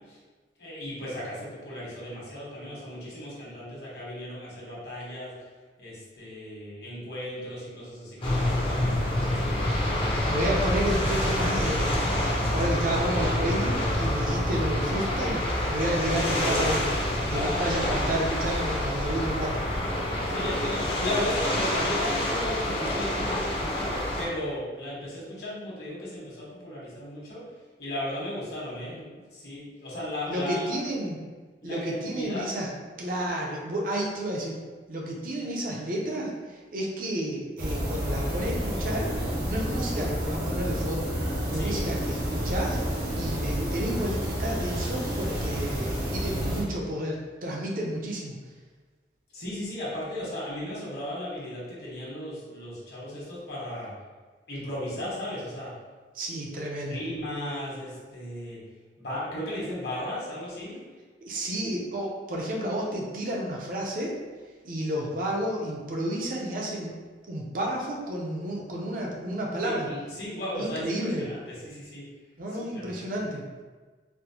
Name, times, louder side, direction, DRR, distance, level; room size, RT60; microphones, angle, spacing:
voice 1, 0.6-5.3 5.8-9.4 14.1-14.4 17.2-17.7 20.3-27.4 27.8-30.7 31.6-32.5 41.5-41.9 49.3-53.9 54.5-55.7 56.9-58.6 59.0-60.8 69.6-72.1 72.5-73.1, left 1 dB, 65° left, -7 dB, 1.3 m, -35 dB
sound 1, 8.2-24.2, left 1 dB, 30° left, 0.5 m, -27 dB
voice 2, 10.3-12.1 12.5-17.0 17.3-19.6 20.2-20.3 30.3-31.2 31.6-32.7 33.0-34.6 34.9-39.1 39.4-41.1 41.5-48.4 56.1-57.0 61.2-64.1 64.6-66.9 67.3-69.9 70.5-71.3 72.4-73.4, right 1 dB, 50° right, -2 dB, 0.6 m, -31 dB
sound 2, 37.6-46.6, equal, 70° right, 1.1 m, -30 dB
4.3 x 2.0 x 2.8 m, 1.4 s
head